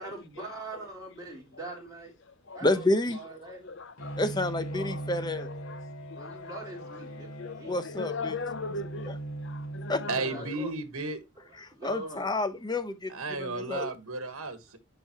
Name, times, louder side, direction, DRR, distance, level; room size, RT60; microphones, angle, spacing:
voice 1, 0.0-2.2 2.5-3.7 6.1-7.8 9.5-9.7 10.0-10.8 11.4-12.6 13.5-13.6, right 2 dB, 15° right, 4.1 m, -43 dB
voice 2, 2.6-3.2 4.2-5.5 7.7-8.4 9.9-10.0 11.6-13.9, left 2 dB, 20° left, 0.8 m, -29 dB
voice 3, 3.5-4.2 4.7-5.1 5.4-6.6 7.4-10.6, left 4 dB, 55° left, 0.7 m, -39 dB
Bowed string instrument, 4.0-10.7, right 1 dB, 85° left, 2.8 m, -40 dB
voice 4, 10.1-11.2 13.1-14.8, right 3 dB, 75° right, 1.5 m, -34 dB
11.5 x 5.1 x 3.0 m
head